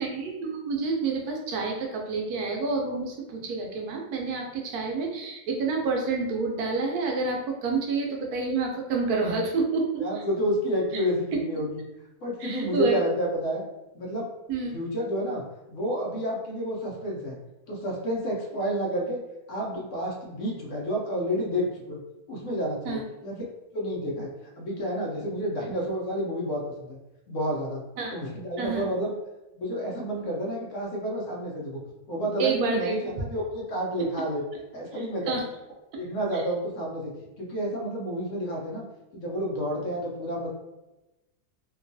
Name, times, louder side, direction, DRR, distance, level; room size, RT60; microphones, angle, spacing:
voice 1, 0.0-10.0 11.3-11.4 12.4-12.9 14.5-14.7 22.8-23.0 28.0-28.1 28.6-28.9 32.4-32.9 34.9-35.4 36.3-36.4, right 4 dB, 90° right, 1 dB, 1.1 m, -28 dB
voice 2, 10.0-11.8 12.2-13.6 13.9-14.3 14.7-15.4 15.7-17.4 17.7-19.2 19.5-22.0 22.3-23.4 23.7-24.3 24.6-27.0 27.3-27.8 28.1-29.1 29.5-31.8 32.1-34.4 34.7-35.4 36.0-37.1 37.4-38.8 39.1-40.5, equal, 65° left, -2 dB, 0.9 m, -30 dB
2.9 x 2.3 x 2.6 m, 1.0 s
omnidirectional pair, 1.6 m